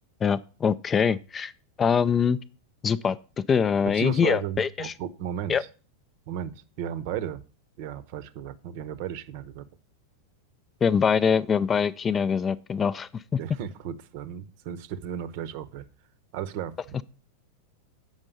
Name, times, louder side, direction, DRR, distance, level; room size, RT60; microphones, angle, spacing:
voice 1, 0.2-1.5 1.8-2.4 2.8-3.2 3.5-4.9 5.5-5.6 10.8-13.4, left 6 dB, 20° left, 0.3 m, -23 dB
voice 2, 3.9-5.6 6.3-7.4 7.8-9.7 13.4-15.9 16.3-17.0, right 9 dB, 45° right, 0.8 m, -34 dB
7.9 x 5.2 x 6.9 m
figure-of-eight pair, 90°, 0 cm